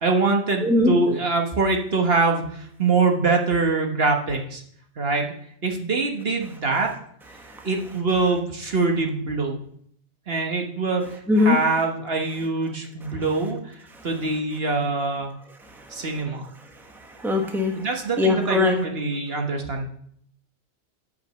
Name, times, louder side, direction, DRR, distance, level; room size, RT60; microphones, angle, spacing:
voice 1, 0.0-4.6 5.0-5.3 5.6-6.9 7.6-9.6 10.3-11.0 11.4-13.8 14.0-15.3 15.9-16.4 17.8-19.9, right 3 dB, 55° right, 2 dB, 1.4 m, -24 dB
voice 2, 0.6-0.9 6.8-6.9 7.3-7.9 8.2-8.3 11.0-11.7 13.0-13.5 14.0-14.1 15.8-16.4 16.9-18.8, left 3 dB, ahead, 3 dB, 1.1 m, -24 dB
8.2 x 5.9 x 6.7 m, 0.66 s
omnidirectional pair, 1.2 m